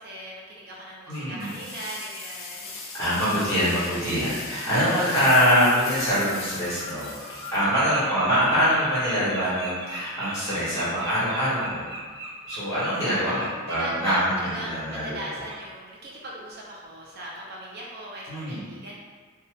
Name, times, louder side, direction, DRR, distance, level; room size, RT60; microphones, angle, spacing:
voice 1, 0.0-2.7 7.7-7.8 13.0-18.9, right 1 dB, 50° right, -4 dB, 0.4 m, -38 dB
voice 2, 1.1-1.5 2.9-7.1 7.5-11.9 12.5-15.2 18.3-18.6, equal, 15° left, -11 dB, 1.4 m, -24 dB
sound 1, 1.4-8.1, left 3 dB, 70° left, 0.6 m, -39 dB
Bird, 4.6-4.7 5.2-5.6 5.8-14.6 14.9-15.1 15.5-15.6, right 1 dB, 85° right, 1.0 m, -39 dB
3.0 x 2.2 x 3.2 m, 1.5 s
head